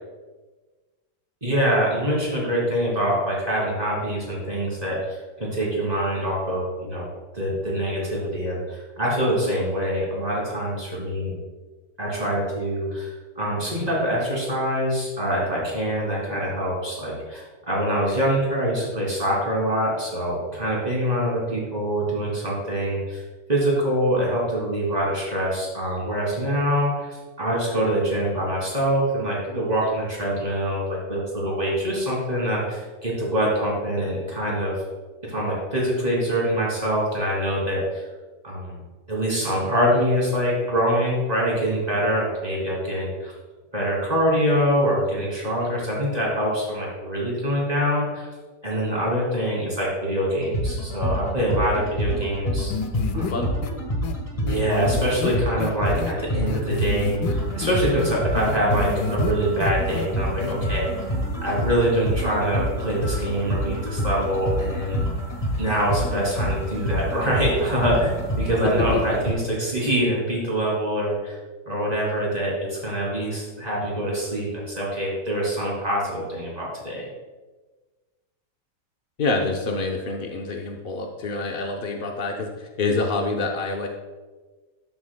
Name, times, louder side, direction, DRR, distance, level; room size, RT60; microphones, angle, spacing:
voice 1, 1.4-7.1 7.3-11.3 12.0-23.2 23.5-34.7 35.3-38.0 38.4-38.8 39.1-43.3 43.7-48.3 48.6-52.7 53.1-53.5 54.4-60.9 61.4-65.0 65.6-71.4 71.7-77.1, equal, 20° right, -5 dB, 2.8 m, -24 dB
sound 1, 50.4-69.3, equal, 20° left, 1.4 m, -27 dB
sound 2, 52.7-53.3 53.6-53.7 54.0-54.1 54.5-56.1 56.5-57.3 57.6-59.3 59.6-60.1 60.4-60.5, left 7 dB, 90° left, 1.3 m, -29 dB
voice 2, 53.1-53.5 68.7-69.0 79.2-83.9, left 3 dB, 65° left, 2 dB, 0.5 m, -27 dB
12.5 x 7.3 x 2.2 m, 1.3 s
omnidirectional pair, 1.9 m